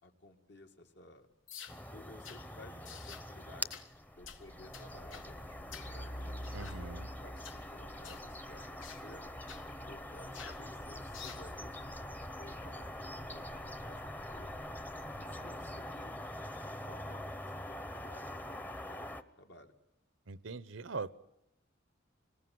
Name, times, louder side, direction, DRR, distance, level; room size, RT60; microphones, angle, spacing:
voice 1, 0.0-1.3 1.9-3.8 4.1-6.2 7.0-9.3 9.9-12.0 12.4-12.9 13.3-14.6 15.2-19.8, left 1 dB, 60° left, 4 dB, 2.1 m, -56 dB
sound 1, 1.5-1.8 2.2-2.4 2.9-3.3 3.7-3.9 4.3-4.4 4.7-5.3 5.7-5.9 6.4-6.8 7.4-7.6 8.0-8.3 8.8-9.0 9.5-9.7 10.3-10.6 11.1-11.5, left 8 dB, 85° left, 1.6 m, -49 dB
sound 2, 1.7-19.2, left 1 dB, 10° left, 0.9 m, -44 dB
Truck, 4.1-15.5, equal, 45° left, 1.4 m, -50 dB
voice 2, 6.5-7.1 20.3-21.1, right 4 dB, 80° right, 17 dB, 0.9 m, -41 dB
26.5 x 20.0 x 9.5 m, 0.88 s
head